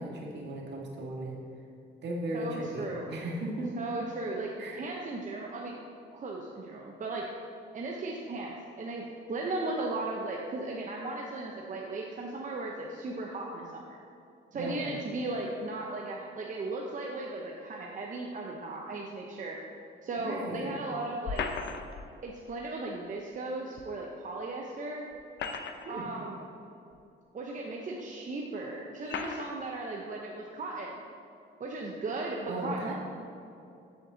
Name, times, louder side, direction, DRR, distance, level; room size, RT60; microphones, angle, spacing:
voice 1, 0.0-1.4 2.0-3.7 4.6-4.9 14.5-14.9 20.2-20.8 25.8-26.0 32.5-32.9, right 1 dB, 60° right, -2 dB, 1.8 m, -36 dB
voice 2, 2.3-3.1 3.8-5.8 6.1-7.3 7.7-14.0 14.5-19.6 20.0-21.5 22.2-25.1 25.9-26.4 27.3-30.9 31.6-32.9, right 2 dB, 40° right, -1 dB, 0.9 m, -36 dB
sound 1, 21.2-22.1 23.8-23.9 25.1-26.1 26.9-27.0 28.0-28.1 29.0-29.6, left 5 dB, 60° left, 0.8 m, -36 dB
8.0 x 7.4 x 3.9 m, 2.7 s
cardioid pair, 90°, 20 cm